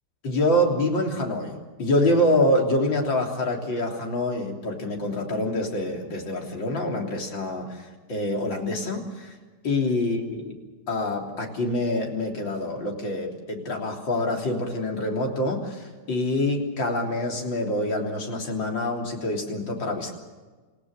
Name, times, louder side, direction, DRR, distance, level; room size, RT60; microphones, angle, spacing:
voice 1, 0.2-9.4 9.6-10.6 10.9-20.1, left 1 dB, 80° left, 1 dB, 4.2 m, -26 dB
29.0 x 17.5 x 6.6 m, 1.3 s
omnidirectional pair, 2.0 m